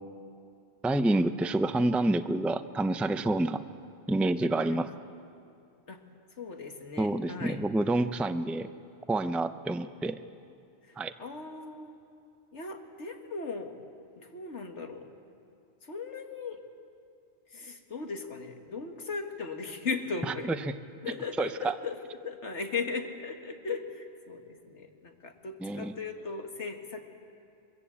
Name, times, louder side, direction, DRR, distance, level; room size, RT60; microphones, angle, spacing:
voice 1, 0.8-3.6 4.1-4.9 7.0-8.7 9.1-10.2 11.0-11.1 21.4-21.7 25.6-25.9, right 2 dB, ahead, 10 dB, 0.4 m, -28 dB
voice 2, 6.4-7.6 10.9-12.0 12.5-13.7 14.2-15.1 15.8-16.6 17.5-20.6 21.0-22.0 22.2-27.1, left 4 dB, 80° left, 4 dB, 2.2 m, -37 dB
23.5 x 22.5 x 8.5 m, 2.5 s
omnidirectional pair, 1.2 m